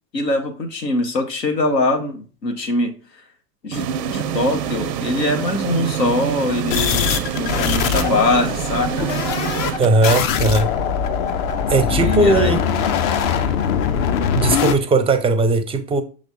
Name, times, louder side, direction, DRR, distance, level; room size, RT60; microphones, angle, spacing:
voice 1, 0.1-3.2 3.6-9.1 11.8-12.5, left 2 dB, 85° left, 1.0 m, -22 dB
sound 1, 3.7-10.5, right 8 dB, 80° right, 0.6 m, -26 dB
sound 2, 6.7-14.7, left 7 dB, 55° left, 0.8 m, -21 dB
voice 2, 9.8-10.7 11.7-12.6 14.3-16.0, right 2 dB, 10° right, 0.5 m, -18 dB
6.1 x 3.1 x 2.7 m
figure-of-eight pair, 80°, 48 cm